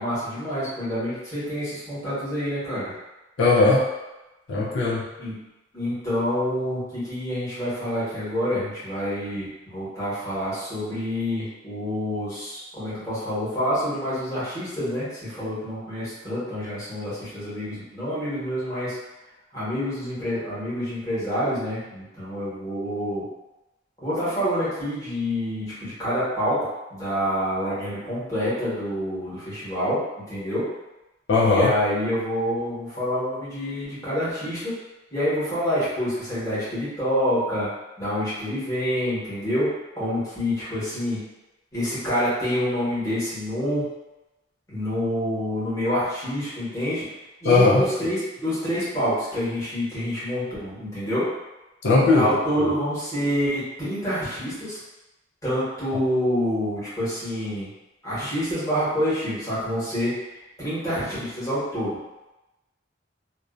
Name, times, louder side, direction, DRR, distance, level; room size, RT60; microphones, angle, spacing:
voice 1, 0.0-2.9 5.2-5.3 5.7-19.0 19.5-23.2 24.0-30.7 31.4-34.7 35.1-37.7 38.0-41.2 41.7-43.9 44.7-47.0 47.4-51.3 52.1-54.8 55.4-57.7 58.0-60.2 60.6-62.0, equal, 15° left, -12 dB, 1.1 m, -27 dB
voice 2, 3.4-3.9 4.5-5.1 31.3-31.7 47.4-47.8 51.8-52.3, left 3 dB, 80° left, -5 dB, 0.5 m, -18 dB
2.4 x 2.1 x 2.4 m, 1.0 s
head